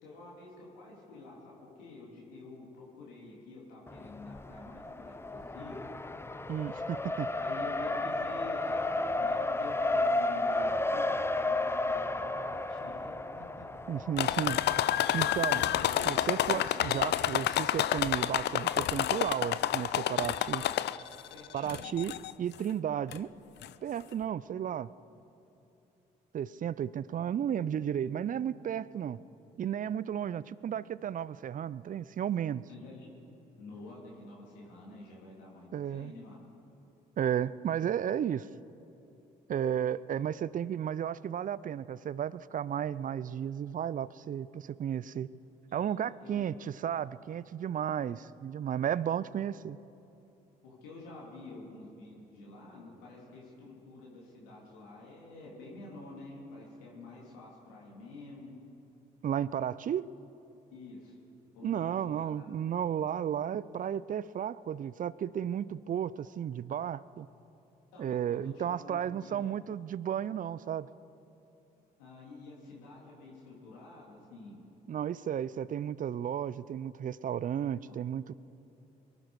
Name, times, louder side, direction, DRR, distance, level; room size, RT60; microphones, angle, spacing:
voice 1, 0.0-5.9 7.4-13.6 14.0-14.1 15.5-16.2 21.3-21.9 32.7-33.1 33.5-36.4 45.7-45.9 46.2-46.5 47.9-48.2 50.6-58.5 60.7-61.2 61.5-62.6 67.9-69.3 72.0-74.6, left 3 dB, 80° left, -4 dB, 3.0 m, -48 dB
Race car auto racing, 3.9-16.5, left 2 dB, 10° left, 0.7 m, -33 dB
voice 2, 6.5-7.3 13.9-14.6 15.1-15.6 16.1-20.6 21.5-22.1 22.4-23.3 23.8-24.9 26.3-29.2 29.6-32.6 35.7-36.1 37.2-38.5 39.5-45.3 45.7-49.8 59.2-60.1 61.6-67.3 68.0-70.9 74.9-78.3, right 9 dB, 40° right, 19 dB, 0.5 m, -33 dB
sound 1, 14.2-21.2 21.7-22.3 23.1-23.2 23.6-23.7, left 12 dB, 55° left, 0.5 m, -29 dB
23.0 x 11.5 x 4.8 m, 2.9 s
hypercardioid pair, 45°, 21 cm